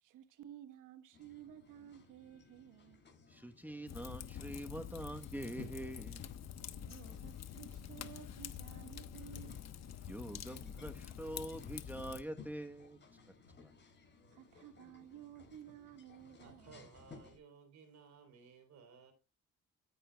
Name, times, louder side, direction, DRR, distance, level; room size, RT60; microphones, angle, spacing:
voice 1, 0.0-3.0 6.7-9.7 14.3-16.8, right 11 dB, 90° right, 1.1 m, -54 dB
sound 1, 1.1-17.4, left 4 dB, 35° left, 7.2 m, -60 dB
voice 2, 3.3-6.4 10.1-13.0 13.6-13.7, right 1 dB, 5° right, 1.0 m, -45 dB
Fire, 3.9-12.2, left 9 dB, 60° left, 1.1 m, -47 dB
voice 3, 16.4-19.1, right 5 dB, 65° right, 3.6 m, -59 dB
14.0 x 10.0 x 2.2 m
cardioid pair, 90°, 30 cm